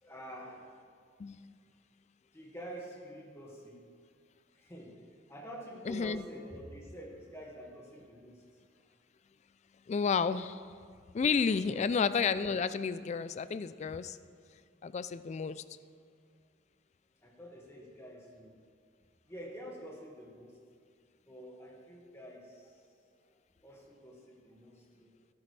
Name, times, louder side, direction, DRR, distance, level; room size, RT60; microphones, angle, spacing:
voice 1, 0.0-0.6 2.3-3.8 4.5-4.9 5.3-8.8 11.5-11.8 17.2-18.6 19.3-20.6 21.3-22.8 23.0-23.1 23.6-25.2, equal, 15° left, -2 dB, 1.8 m, -48 dB
voice 2, 5.9-6.2 9.9-10.6 11.1-14.2 14.8-15.6, left 5 dB, 40° left, 15 dB, 0.3 m, -31 dB
14.0 x 13.0 x 3.3 m, 2.1 s
head